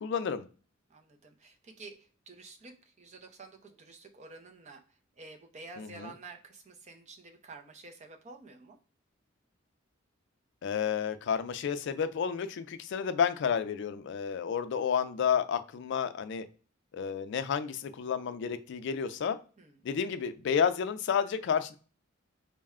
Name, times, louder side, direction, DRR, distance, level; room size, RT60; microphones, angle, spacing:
voice 1, 0.0-0.4 5.8-6.1 10.6-16.5 16.9-19.4 19.8-21.8, left 7 dB, 60° left, 0.3 m, -31 dB
voice 2, 0.9-8.8 19.6-19.8, right 3 dB, 35° right, 0.5 m, -50 dB
3.9 x 2.2 x 3.5 m
head